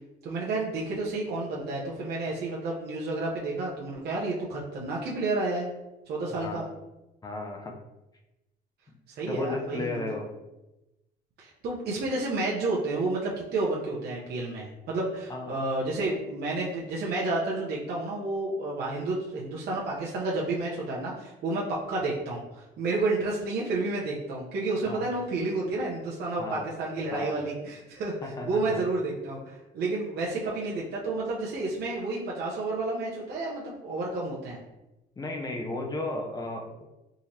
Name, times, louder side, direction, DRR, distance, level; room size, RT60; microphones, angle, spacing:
voice 1, 0.2-5.7 6.1-6.6 9.2-10.0 11.4-34.6, right 2 dB, 65° right, -4 dB, 0.8 m, -30 dB
voice 2, 6.4-6.7 7.2-7.8 9.3-10.3 15.3-15.5 24.9-25.0 26.4-26.6 27.1-27.4 28.2-28.6 35.2-36.9, left 2 dB, 20° left, 2 dB, 0.6 m, -34 dB
3.8 x 3.0 x 2.7 m, 0.98 s
cardioid pair, 110°, 18 cm